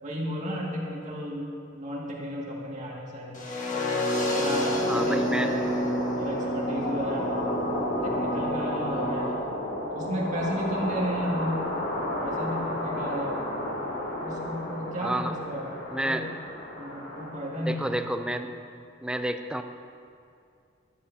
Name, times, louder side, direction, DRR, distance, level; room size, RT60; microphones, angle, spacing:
voice 1, 0.0-1.5 1.7-3.4 4.2-7.5 8.0-9.4 9.9-11.7 12.2-13.4 14.2-15.7 16.0-16.4 16.8-18.0, equal, 35° right, -4 dB, 2.1 m, -33 dB
sound 1, 3.3-9.3, left 1 dB, 40° left, 1.5 m, -29 dB
sound 2, 4.1-17.9, left 1 dB, 70° left, 2.5 m, -33 dB
voice 2, 4.9-5.5 15.0-15.3 15.9-16.3 17.7-18.6 19.0-19.6, right 1 dB, 5° right, 7 dB, 0.4 m, -29 dB
15.0 x 13.0 x 2.8 m, 2.4 s
head